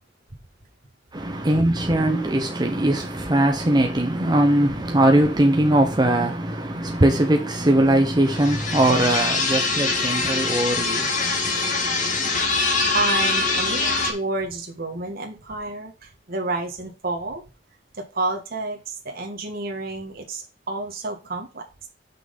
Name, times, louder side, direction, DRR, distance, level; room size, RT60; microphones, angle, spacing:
voice 1, 1.1-11.1, right 1 dB, 25° right, 1.0 m, -20 dB
sound 1, 8.3-14.1, left 3 dB, 45° left, 2.3 m, -23 dB
voice 2, 12.9-17.4 17.9-21.9, right 2 dB, 55° right, 1.6 m, -30 dB
6.2 x 6.0 x 5.3 m
head